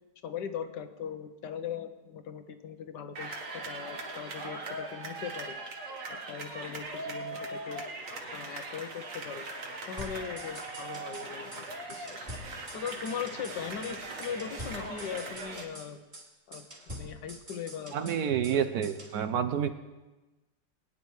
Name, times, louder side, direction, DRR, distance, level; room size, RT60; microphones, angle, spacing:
voice 1, 0.2-5.6 6.1-7.8 8.3-9.5 9.9-12.3 12.7-16.0 16.5-18.7, left 7 dB, 75° left, 9 dB, 1.4 m, -40 dB
sound 1, 3.1-15.6, right 2 dB, 50° right, 1.8 m, -40 dB
sound 2, 10.0-11.3 11.5-11.6 11.9-13.6 13.8-14.0 14.2-16.3 16.5-18.6 18.8-19.2, equal, 25° right, 2.6 m, -45 dB
voice 2, 17.9-19.7, right 8 dB, 70° right, 10 dB, 1.0 m, -29 dB
21.0 x 10.0 x 3.2 m, 1.1 s
omnidirectional pair, 1.9 m